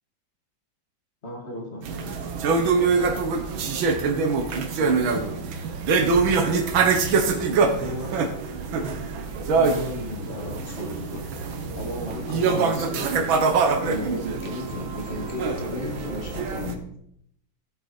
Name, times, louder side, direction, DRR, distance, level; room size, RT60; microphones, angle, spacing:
voice 1, 1.2-1.9 4.6-5.4 7.5-8.2 9.5-11.3 11.8-13.1 13.8-16.8, left 2 dB, 35° left, 1 dB, 2.3 m, -35 dB
sound 1, 1.8-16.7, right 4 dB, 85° right, 1.9 m, -24 dB
14.0 x 7.9 x 4.1 m, 0.72 s
omnidirectional pair, 2.1 m